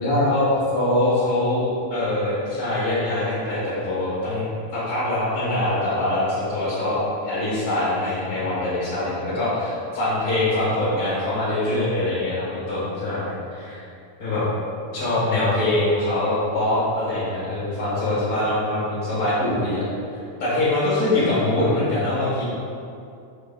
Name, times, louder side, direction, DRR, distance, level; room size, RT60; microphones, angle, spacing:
voice 1, 0.0-4.4 4.7-13.8 14.2-14.5 14.9-19.8 20.4-22.4, left 1 dB, 40° left, -12 dB, 1.4 m, -23 dB
6.6 x 6.3 x 2.2 m, 2.5 s
omnidirectional pair, 3.6 m